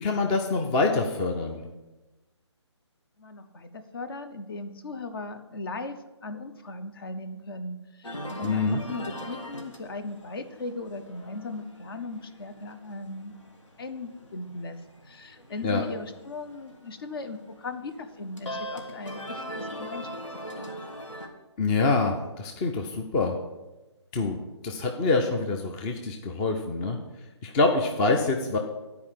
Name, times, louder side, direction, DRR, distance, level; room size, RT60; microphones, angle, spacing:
voice 1, 0.0-1.6 8.4-8.8 15.6-15.8 21.6-23.3 24.1-24.4 24.6-27.0 27.4-28.6, left 3 dB, 15° left, 3 dB, 0.4 m, -25 dB
voice 2, 3.2-13.4 13.8-14.8 15.0-20.1 20.6-20.7, left 3 dB, 50° left, 9 dB, 0.9 m, -38 dB
sound 1, 8.0-21.3, equal, 85° left, 1.8 m, -41 dB
9.6 x 4.8 x 7.4 m, 1.1 s
figure-of-eight pair, 150°, 15 cm